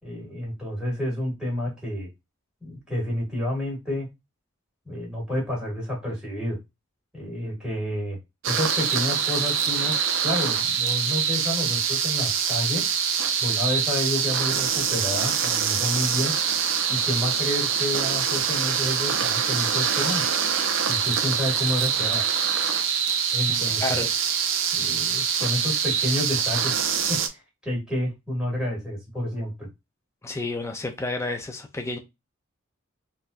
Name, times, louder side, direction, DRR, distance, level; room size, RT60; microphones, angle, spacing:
voice 1, 0.0-2.1 2.6-4.1 4.8-6.6 7.1-8.2 8.4-9.9 10.2-12.9 13.4-16.3 16.9-20.2 20.9-22.2 23.3-24.1 24.7-26.8 27.1-29.7, left 1 dB, 5° right, 1.9 m, -29 dB
sound 1, 8.4-27.3, right 7 dB, 60° right, 0.5 m, -24 dB
voice 2, 23.5-24.1 30.2-32.0, left 2 dB, 15° left, 0.4 m, -30 dB
3.9 x 2.6 x 2.4 m
head